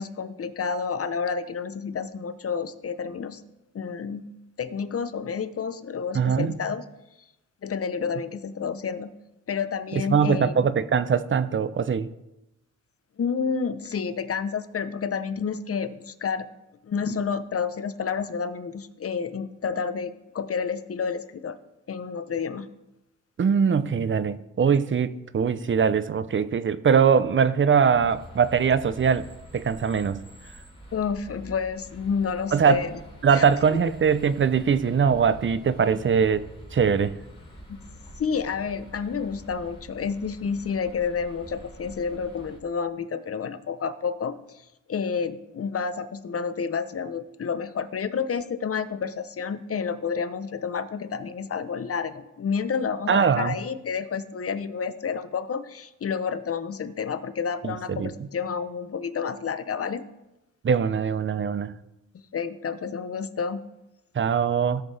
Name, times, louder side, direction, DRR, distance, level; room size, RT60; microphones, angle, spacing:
voice 1, 0.0-3.4 3.7-4.3 4.6-6.8 7.6-9.1 9.5-10.5 13.2-16.5 16.8-21.6 21.9-22.7 30.9-33.0 33.3-33.4 33.7-33.8 37.7-37.8 38.2-44.6 44.9-60.1 62.3-63.6, left 6 dB, 45° left, 12 dB, 0.8 m, -30 dB
voice 2, 6.1-6.5 9.9-12.1 23.4-29.3 29.5-30.2 32.5-32.8 33.2-36.4 36.7-37.1 53.1-53.5 57.6-58.1 60.6-61.7 64.1-64.8, right 6 dB, 35° right, 14 dB, 0.6 m, -22 dB
sound 1, 27.9-42.6, equal, 15° left, 3.4 m, -46 dB
17.0 x 6.5 x 3.4 m, 0.94 s
cardioid pair, 75°, 33 cm